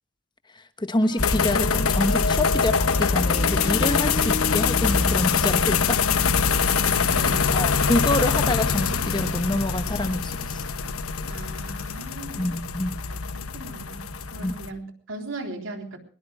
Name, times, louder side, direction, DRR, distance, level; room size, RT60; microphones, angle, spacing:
voice 1, 0.5-6.0 7.5-10.7 12.4-13.0 14.4-14.6, left 1 dB, 20° left, 10 dB, 1.0 m, -27 dB
sound 1, 1.0-6.2, left 3 dB, 75° left, 4.5 m, -33 dB
sound 2, 1.2-14.7, left 5 dB, 90° left, 1.2 m, -24 dB
voice 2, 6.7-7.6 11.3-12.5 13.1-16.0, right 2 dB, 65° right, 5 dB, 3.7 m, -38 dB
22.0 x 21.5 x 2.4 m, 0.43 s
head